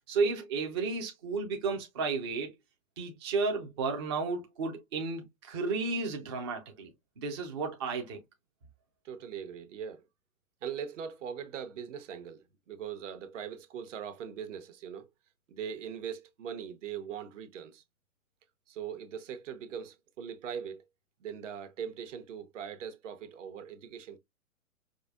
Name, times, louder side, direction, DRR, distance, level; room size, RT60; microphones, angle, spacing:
voice 1, 0.1-2.5 3.0-6.9 7.2-8.2, right 4 dB, 20° right, 0.3 m, -32 dB
voice 2, 9.0-10.0 10.6-15.1 15.5-17.8 18.7-20.8 21.2-24.2, right 8 dB, 60° right, 0.9 m, -41 dB
4.9 x 2.1 x 2.3 m
hypercardioid pair, 120°, 43 cm